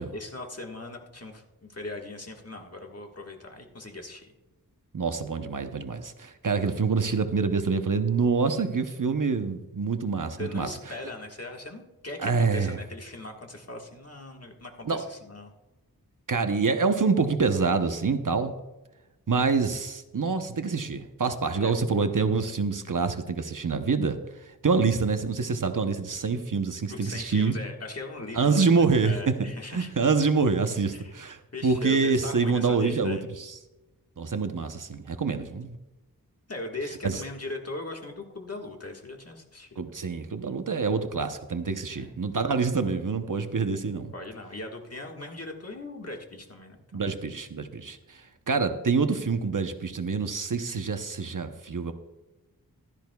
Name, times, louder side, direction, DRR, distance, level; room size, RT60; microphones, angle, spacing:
voice 1, 0.0-4.3 10.4-15.5 21.6-21.7 26.9-28.8 29.0-29.9 30.9-31.1 31.5-33.2 36.5-39.9 41.9-42.1 44.1-47.0, left 2 dB, 40° left, 2 dB, 1.6 m, -39 dB
voice 2, 4.9-10.7 12.2-12.8 14.8-15.0 16.3-18.5 19.3-27.5 28.3-29.5 29.7-33.6 34.2-35.8 37.0-37.2 39.8-44.1 46.9-51.9, right 4 dB, 55° right, 7 dB, 0.9 m, -26 dB
15.5 x 12.5 x 2.3 m, 1.1 s
wide cardioid pair, 70°, 37 cm